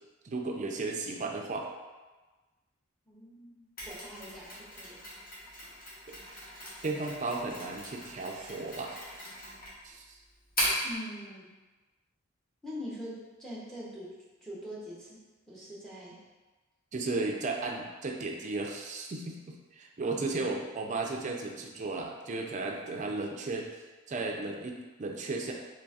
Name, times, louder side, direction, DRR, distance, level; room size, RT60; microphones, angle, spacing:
voice 1, 0.2-1.7 6.8-9.0 9.8-10.2 16.9-23.7 24.1-25.5, right 3 dB, 35° right, 1 dB, 0.4 m, -35 dB
voice 2, 3.1-5.0 10.8-11.5 12.6-15.2 15.5-16.2 20.0-20.4, equal, ahead, -7 dB, 0.7 m, -43 dB
Mechanisms, 3.8-10.9, equal, 45° left, 1.3 m, -38 dB
3.9 x 3.2 x 2.4 m, 1.3 s
head